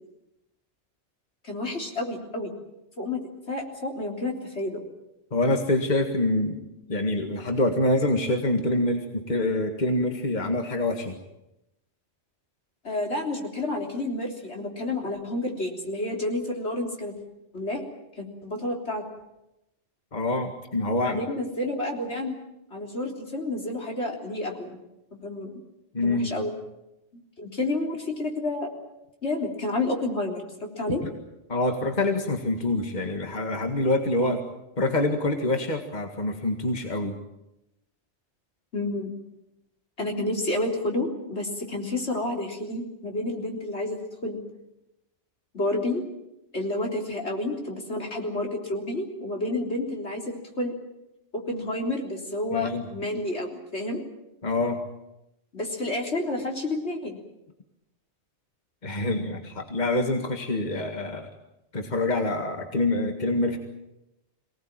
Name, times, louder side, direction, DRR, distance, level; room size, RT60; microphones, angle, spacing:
voice 1, 1.4-2.6 3.0-3.2 3.5-4.8 12.8-17.1 17.5-17.8 18.2-19.0 21.0-22.4 22.7-24.8 25.1-25.6 26.0-26.5 27.4-28.7 29.2-31.0 38.7-39.1 40.0-44.4 45.5-46.0 46.5-50.2 50.6-50.7 51.3-54.0 55.5-57.2, left 2 dB, 70° left, 1 dB, 4.0 m, -30 dB
voice 2, 5.3-6.6 6.9-11.2 20.1-21.2 25.9-26.3 31.0-31.1 31.5-34.4 34.8-37.1 52.5-52.9 54.4-54.8 58.8-61.3 61.7-63.6, left 2 dB, 40° left, 4 dB, 2.0 m, -26 dB
24.0 x 18.5 x 9.0 m, 0.90 s
omnidirectional pair, 1.2 m